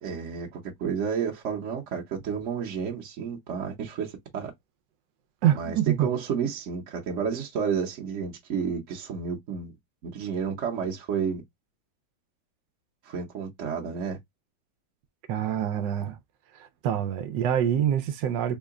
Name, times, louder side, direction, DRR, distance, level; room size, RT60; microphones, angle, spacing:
voice 1, 0.0-4.5 5.5-9.7 10.1-11.4 13.0-14.2, right 6 dB, 55° right, 1.0 m, -31 dB
voice 2, 5.4-6.1 15.3-16.2 16.5-18.6, right 10 dB, 90° right, 1.3 m, -26 dB
3.7 x 2.1 x 3.5 m
omnidirectional pair, 1.9 m